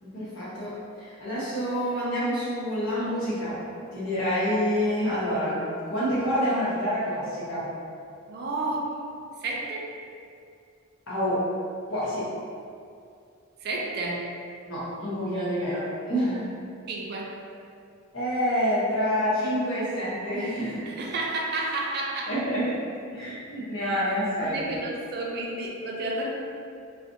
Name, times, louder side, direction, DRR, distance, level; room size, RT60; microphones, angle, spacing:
voice 1, 0.0-3.6 3.9-7.7 11.1-11.5 11.9-12.3 14.6-16.5 18.1-20.9 22.3-22.8 23.1-24.6, equal, 75° left, -10 dB, 0.9 m, -27 dB
voice 2, 8.3-8.9 9.4-9.9 13.6-14.3 16.9-17.3 20.9-22.3 24.4-26.3, right 2 dB, 50° right, -1 dB, 0.3 m, -31 dB
2.4 x 2.0 x 2.6 m, 2.4 s
head